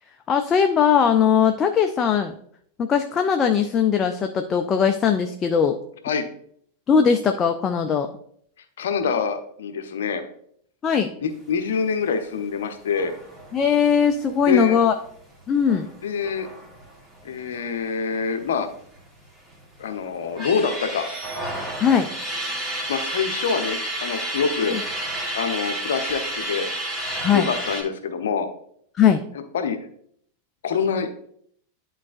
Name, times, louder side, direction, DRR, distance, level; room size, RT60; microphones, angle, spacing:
voice 1, 0.3-2.3 2.9-5.8 6.9-8.1 10.8-11.1 13.5-14.9 15.5-15.9 21.8-22.1 24.7-24.8 27.2-27.5 29.0-29.2, left 7 dB, 25° left, 6 dB, 0.4 m, -19 dB
voice 2, 8.8-10.2 11.2-13.1 14.5-14.8 16.0-16.5 17.2-18.7 19.8-21.0 22.9-24.8 25.3-26.7 27.3-28.5 29.5-29.8 30.6-31.1, left 5 dB, 60° left, 7 dB, 0.7 m, -25 dB
sound 1, 12.9-18.0 18.3-18.4 18.6-19.6 20.0-27.8, right 1 dB, 15° right, 1.5 m, -31 dB
10.5 x 4.0 x 2.5 m, 0.66 s
figure-of-eight pair, 90°, 0 cm